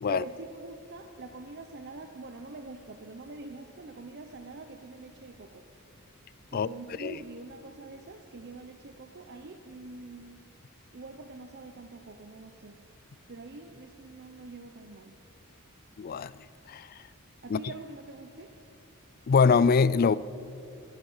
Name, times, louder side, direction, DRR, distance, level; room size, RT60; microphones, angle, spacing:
voice 1, 0.1-5.7 6.5-10.4 10.9-12.8 13.3-15.2 17.4-18.5, right 3 dB, 50° right, 6 dB, 0.7 m, -44 dB
voice 2, 16.0-16.3 16.7-16.9 17.5-17.6 19.3-20.2, left 5 dB, 40° left, 19 dB, 0.3 m, -23 dB
19.5 x 12.0 x 5.6 m, 2.7 s
head